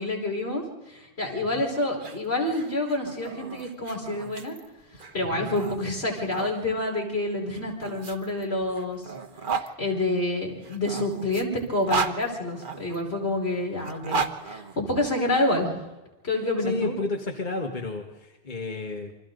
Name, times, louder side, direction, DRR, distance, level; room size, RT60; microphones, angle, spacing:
voice 1, 0.0-4.6 4.9-9.0 9.5-15.7 16.2-16.9, left 2 dB, 85° left, 0 dB, 5.1 m, -28 dB
sound 1, 1.9-6.5 7.5-9.7 10.6-13.0 13.8-15.4, right 5 dB, 55° right, 1.3 m, -34 dB
voice 2, 16.6-19.1, left 3 dB, 50° left, 1 dB, 1.9 m, -32 dB
28.5 x 25.0 x 4.0 m, 1.1 s
omnidirectional pair, 1.1 m